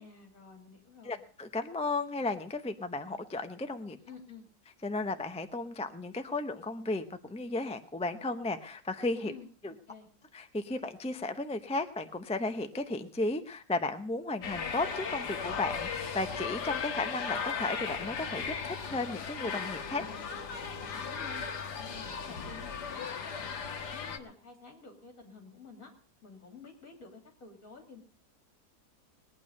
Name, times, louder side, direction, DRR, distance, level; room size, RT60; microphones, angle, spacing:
voice 1, 0.0-1.2 3.9-4.5 9.2-10.1 19.9-20.5 20.8-21.4 21.8-23.5 23.8-25.9 26.2-28.0, left 4 dB, 55° left, 2 dB, 3.6 m, -51 dB
voice 2, 1.0-4.0 4.8-9.3 9.6-9.7 10.3-20.1, left 2 dB, 10° left, 8 dB, 0.4 m, -34 dB
sound 1, 14.4-24.2, left 6 dB, 90° left, 1.9 m, -37 dB
20.5 x 9.2 x 5.4 m, 0.42 s
omnidirectional pair, 1.7 m